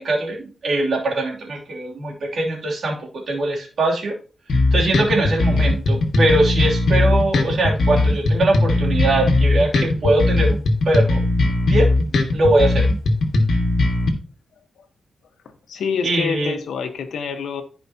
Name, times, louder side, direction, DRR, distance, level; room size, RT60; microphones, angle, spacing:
voice 1, 0.0-4.1 4.5-11.9 12.3-12.9 16.0-16.6, right 2 dB, 65° right, -1 dB, 3.0 m, -22 dB
sound 1, 4.5-14.1, left 2 dB, 70° left, 1.7 m, -18 dB
voice 2, 15.7-17.6, left 6 dB, 90° left, 7 dB, 1.3 m, -26 dB
14.5 x 5.1 x 2.9 m, 0.38 s
cardioid pair, 95°, 0 cm